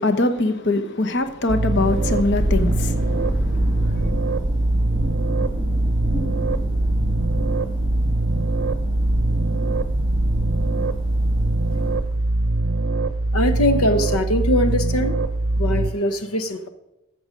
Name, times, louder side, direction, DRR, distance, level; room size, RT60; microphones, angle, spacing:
voice 1, 0.0-4.1, left 2 dB, 50° left, 1.0 m, -23 dB
Thunder, 1.3-12.4, equal, 20° left, 3.8 m, -29 dB
sound 1, 1.5-15.9, right 2 dB, 50° right, 0.7 m, -22 dB
voice 2, 13.3-15.2 15.6-16.7, equal, 80° left, 0.9 m, -21 dB
13.5 x 7.9 x 5.1 m
head